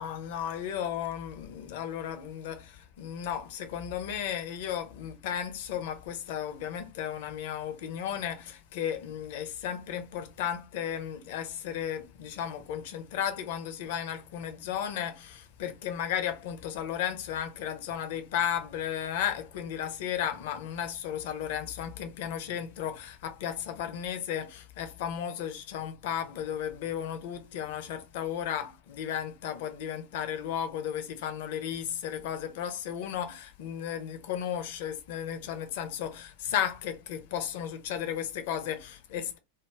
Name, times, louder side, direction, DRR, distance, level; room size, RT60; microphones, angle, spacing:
voice 1, 0.0-39.4, left 9 dB, 50° left, 0.5 m, -34 dB
2.3 x 2.1 x 3.1 m
figure-of-eight pair, 90°, 0 cm